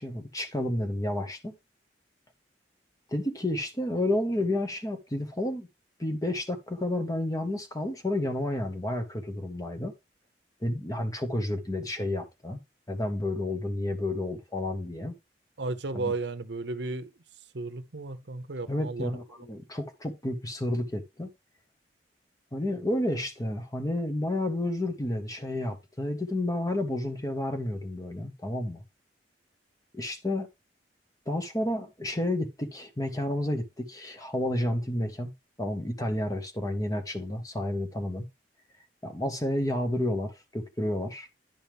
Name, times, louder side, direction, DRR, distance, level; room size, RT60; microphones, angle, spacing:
voice 1, 0.0-1.5 3.1-5.7 6.0-9.9 10.6-12.6 12.9-15.1 15.9-16.1 18.7-21.3 22.5-28.8 29.9-30.5 31.3-35.3 35.6-38.3 39.0-41.3, left 1 dB, 20° left, 1.5 m, -31 dB
voice 2, 15.6-17.1 17.5-19.2, right 3 dB, 70° right, 0.9 m, -34 dB
10.5 x 5.7 x 3.5 m
head